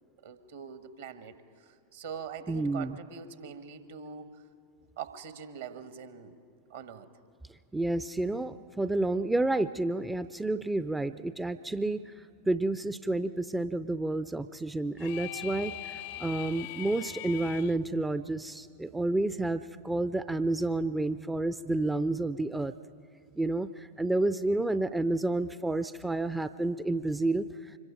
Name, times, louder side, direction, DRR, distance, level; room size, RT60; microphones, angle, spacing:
voice 1, 0.2-4.4 5.0-6.4 6.7-7.1, right 7 dB, 60° right, 10 dB, 1.4 m, -43 dB
voice 2, 2.5-3.0 7.7-22.7 23.4-27.8, right 2 dB, 5° right, 12 dB, 0.4 m, -30 dB
sound 1, 15.0-17.8, left 15 dB, 50° left, 0.5 m, -41 dB
25.0 x 22.0 x 5.2 m, 2.3 s
figure-of-eight pair, 90°, 0 cm